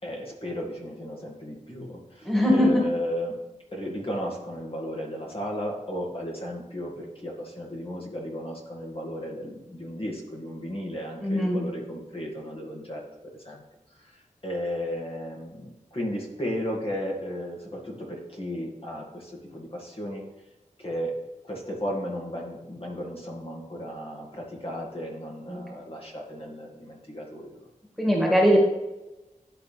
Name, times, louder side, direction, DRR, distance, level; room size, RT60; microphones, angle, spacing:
voice 1, 0.0-3.4 3.7-13.0 13.4-13.6 14.0-20.2 20.8-21.1 21.4-27.6, equal, 40° left, -1 dB, 2.2 m, -34 dB
voice 2, 2.2-2.8 11.2-11.6 25.5-25.6 28.0-28.6, equal, ahead, -2 dB, 2.1 m, -21 dB
11.5 x 4.2 x 3.4 m, 1.0 s
wide cardioid pair, 55°, 14 cm